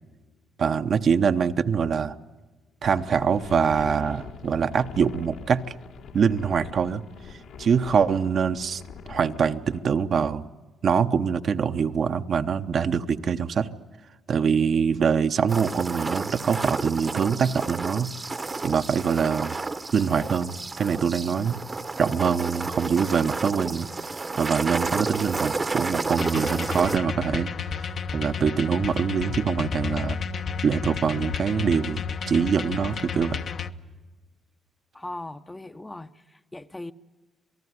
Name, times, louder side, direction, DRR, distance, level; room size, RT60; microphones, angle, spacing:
voice 1, 0.6-2.2 2.8-5.6 6.1-7.0 7.6-8.8 9.1-10.5 10.8-13.7 14.3-18.1 18.6-19.6 19.9-21.6 22.0-23.9 24.4-27.5 27.8-30.2 30.6-32.0 32.3-33.5, right 6 dB, 55° right, 0.9 m, -24 dB
sound 1, 2.8-9.8, left 6 dB, 85° left, 3.5 m, -43 dB
sound 2, 15.5-27.0, right 3 dB, 25° right, 1.0 m, -31 dB
sound 3, 26.2-33.7, left 6 dB, 55° left, 1.0 m, -32 dB
voice 2, 34.9-36.9, left 2 dB, 15° left, 0.8 m, -39 dB
27.5 x 18.5 x 9.6 m
cardioid pair, 90°, 0 cm